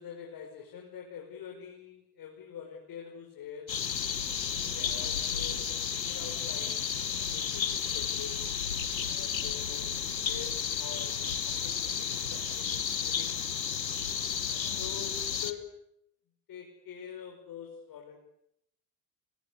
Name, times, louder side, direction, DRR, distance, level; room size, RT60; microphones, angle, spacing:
voice 1, 0.0-3.7 4.5-6.9 7.2-8.4 9.0-13.5 14.4-15.7 16.5-18.2, left 8 dB, 45° left, 1 dB, 5.7 m, -45 dB
sound 1, 3.7-15.5, left 7 dB, 90° left, 1.5 m, -32 dB
25.0 x 24.5 x 8.5 m, 0.79 s
hypercardioid pair, 70°, 49 cm